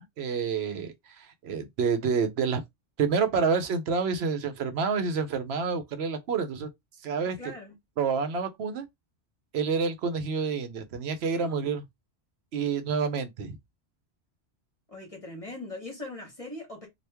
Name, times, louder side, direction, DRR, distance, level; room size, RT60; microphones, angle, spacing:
voice 1, 0.0-2.6 3.0-6.7 7.0-7.4 8.0-8.9 9.5-11.8 12.5-13.6, right 5 dB, 70° right, 0.9 m, -28 dB
voice 2, 7.2-7.7 11.4-11.7 14.9-16.9, left 2 dB, 35° left, 1.0 m, -41 dB
2.9 x 2.4 x 3.4 m
omnidirectional pair, 1.1 m